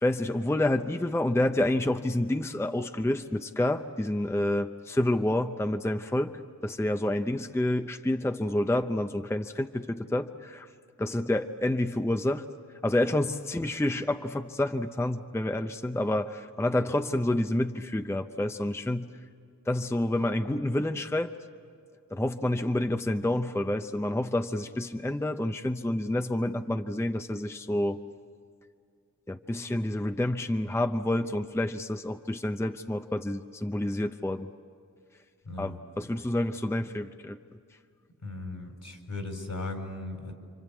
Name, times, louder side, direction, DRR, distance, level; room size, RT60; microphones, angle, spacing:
voice 1, 0.0-6.3 6.6-10.7 11.0-12.4 12.8-19.1 19.7-21.3 22.1-28.0 29.3-34.5 35.6-37.4, left 1 dB, 10° left, 8 dB, 0.6 m, -28 dB
voice 2, 35.5-35.8 38.2-40.3, left 2 dB, 65° left, 4 dB, 4.3 m, -37 dB
28.5 x 25.5 x 8.3 m, 2.2 s
wide cardioid pair, 85°, 33 cm